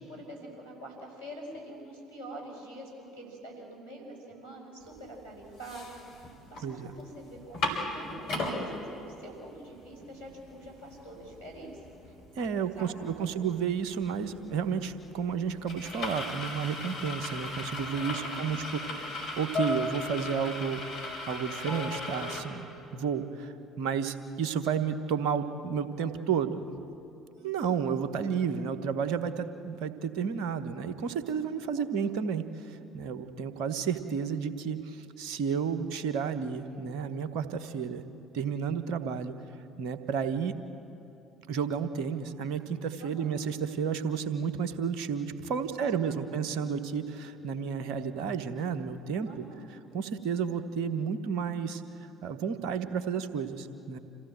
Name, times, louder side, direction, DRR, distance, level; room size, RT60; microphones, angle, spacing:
voice 1, 0.1-11.8 12.8-13.4 18.0-19.1 27.4-27.9 31.7-31.9 32.3-32.4 43.0-43.4 45.5-46.7 49.2-49.7, right 1 dB, 90° left, -4 dB, 6.1 m, -46 dB
sound 1, 5.0-5.1 5.4-6.6 7.0-7.1 7.4-8.6 9.2-9.3 9.6-22.4, left 2 dB, 60° left, 4.7 m, -36 dB
voice 2, 12.4-20.8 21.3-26.6 27.4-38.0 38.3-39.3 39.8-40.6 41.5-49.4 49.9-51.8 52.2-54.0, right 6 dB, 60° right, 10 dB, 1.2 m, -32 dB
27.5 x 15.5 x 7.8 m, 2.7 s
figure-of-eight pair, 55°, 0 cm